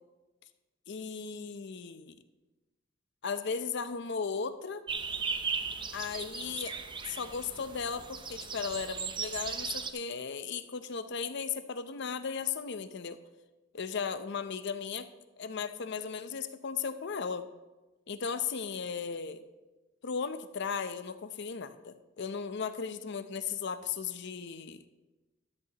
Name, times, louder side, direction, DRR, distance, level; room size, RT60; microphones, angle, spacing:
voice 1, 0.9-2.2 3.2-4.8 5.9-6.7 7.1-13.2 13.7-15.1 15.4-17.4 18.1-19.4 20.0-24.8, left 6 dB, 60° left, 11 dB, 0.6 m, -36 dB
sound 1, 4.9-9.9, right 5 dB, 25° right, 0.6 m, -37 dB
13.5 x 12.5 x 2.9 m, 1.2 s
head